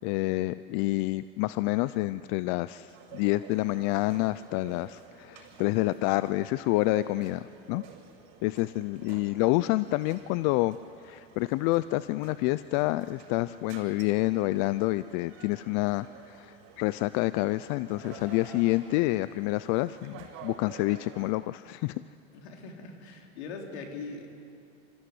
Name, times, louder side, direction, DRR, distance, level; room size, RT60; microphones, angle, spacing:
voice 1, 0.0-7.8 8.4-10.8 11.0-21.9, left 19 dB, 60° left, 15 dB, 0.5 m, -28 dB
sound 1, 2.9-21.3, right 8 dB, 60° right, 5.8 m, -51 dB
Car, 16.4-18.9, equal, 5° left, 7.6 m, -51 dB
voice 2, 22.3-24.3, left 4 dB, 80° left, 2 dB, 3.8 m, -41 dB
25.5 x 15.0 x 9.5 m, 2.5 s
supercardioid pair, 115°, 32 cm